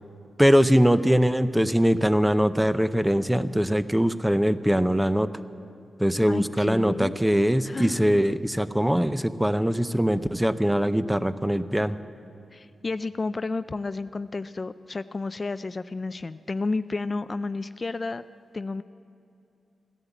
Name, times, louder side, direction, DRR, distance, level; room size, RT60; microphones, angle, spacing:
voice 1, 0.4-5.3 6.0-12.0, equal, 5° right, 12 dB, 0.6 m, -22 dB
voice 2, 6.2-7.2 7.6-8.2 12.5-18.2 18.5-18.8, left 3 dB, 40° left, 13 dB, 0.3 m, -31 dB
14.5 x 11.0 x 8.1 m, 2.7 s
cardioid pair, 75°, 0 cm